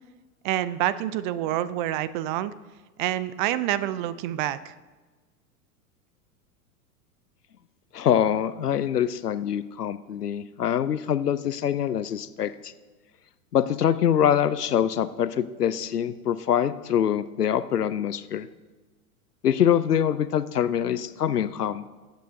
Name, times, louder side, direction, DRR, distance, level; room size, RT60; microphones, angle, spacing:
voice 1, 0.4-2.5 3.0-4.7, right 13 dB, 35° right, 16 dB, 0.5 m, -27 dB
voice 2, 7.9-12.7 13.5-18.5 19.4-21.9, left 9 dB, 85° left, 14 dB, 0.7 m, -24 dB
19.5 x 8.3 x 2.7 m, 1.3 s
figure-of-eight pair, 95°, 46 cm